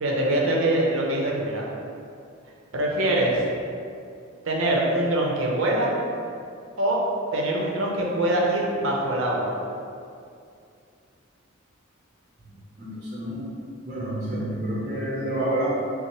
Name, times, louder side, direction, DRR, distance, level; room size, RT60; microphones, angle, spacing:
voice 1, 0.0-1.7 2.7-3.4 4.5-6.0 6.8-7.0 7.3-9.6, right 1 dB, 75° right, -2 dB, 0.7 m, -23 dB
voice 2, 12.5-13.5 13.8-15.6, right 1 dB, 35° right, -8 dB, 0.7 m, -29 dB
5.7 x 2.0 x 3.0 m, 2.4 s
head